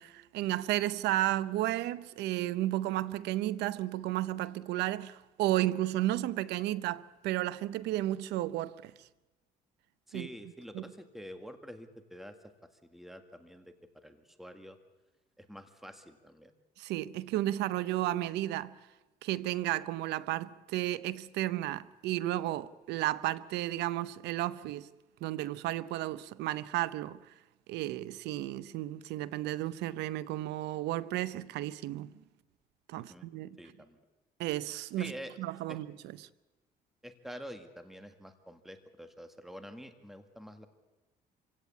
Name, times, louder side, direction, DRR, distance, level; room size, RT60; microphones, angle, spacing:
voice 1, 0.0-9.1 10.1-10.3 10.7-10.8 16.8-18.8 19.2-24.9 25.2-27.2 27.7-32.1 32.9-33.6 34.4-35.1 35.4-35.9, right 15 dB, 85° right, 0.8 m, -33 dB
voice 2, 10.1-12.5 12.8-14.8 15.4-16.5 33.1-33.3 33.6-34.0 35.0-35.8 37.0-40.7, equal, ahead, 1.9 m, -47 dB
26.0 x 16.5 x 8.4 m
cardioid pair, 110°, 17 cm